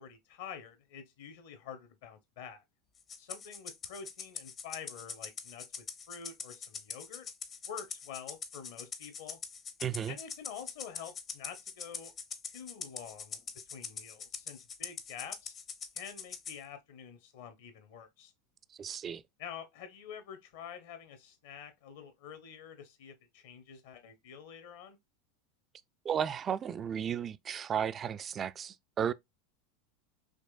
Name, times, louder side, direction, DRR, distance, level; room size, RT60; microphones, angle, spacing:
voice 1, 0.0-2.6 3.2-7.3 7.7-9.4 10.1-12.1 12.4-13.4 13.7-15.5 15.9-18.3 19.4-25.0, left 7 dB, 55° left, 0.9 m, -47 dB
Rattle (instrument), 3.1-16.6, left 6 dB, 30° left, 0.6 m, -43 dB
voice 2, 9.8-10.2 18.8-19.2 26.0-29.1, right 8 dB, 30° right, 0.3 m, -34 dB
5.1 x 3.1 x 2.4 m
figure-of-eight pair, 80°, 0 cm